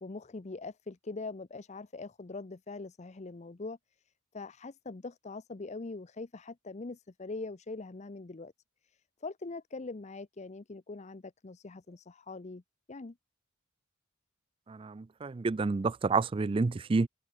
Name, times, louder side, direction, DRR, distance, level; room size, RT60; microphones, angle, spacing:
voice 1, 0.0-3.8 4.3-8.5 8.9-12.6 12.9-13.1, left 3 dB, 35° left, 0.6 m, -42 dB
voice 2, 14.7-17.1, right 4 dB, 25° right, 0.4 m, -29 dB
head